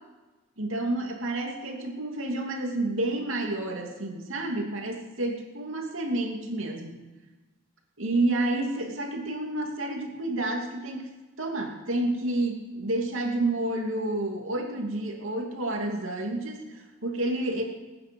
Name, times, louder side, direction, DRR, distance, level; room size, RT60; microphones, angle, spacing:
voice 1, 0.6-7.0 8.0-11.1 11.4-17.6, right 2 dB, 80° right, 1 dB, 2.6 m, -29 dB
21.5 x 9.7 x 5.4 m, 1.2 s
head